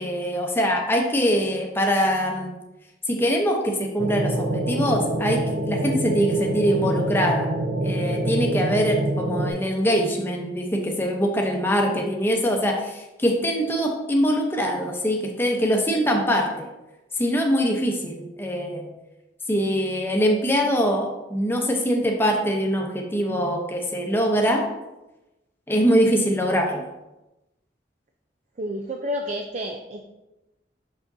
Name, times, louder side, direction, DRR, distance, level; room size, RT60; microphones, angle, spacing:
voice 1, 0.0-2.5 3.1-7.5 7.8-16.7 17.2-18.9 19.5-24.6 25.7-26.8, equal, 10° left, 1 dB, 0.7 m, -23 dB
sound 1, 4.0-9.5, right 1 dB, 75° right, 0.7 m, -26 dB
voice 2, 28.6-30.0, equal, 40° right, 2 dB, 0.4 m, -30 dB
6.0 x 5.9 x 2.6 m, 0.99 s
head